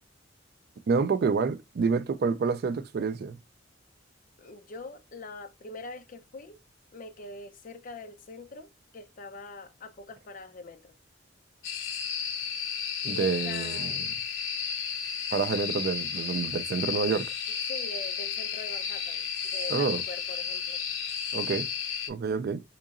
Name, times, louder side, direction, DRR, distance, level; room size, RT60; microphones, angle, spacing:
voice 1, 0.9-3.4 13.0-14.0 15.3-17.3 19.7-20.0 21.3-21.7 22.1-22.6, right 5 dB, 55° right, 0.4 m, -28 dB
voice 2, 4.4-6.6 6.9-10.9 13.0-14.1 17.5-21.1, left 3 dB, 45° left, 0.5 m, -43 dB
sound 1, 11.6-22.1, left 7 dB, 90° left, 0.6 m, -33 dB
3.7 x 2.9 x 2.4 m
head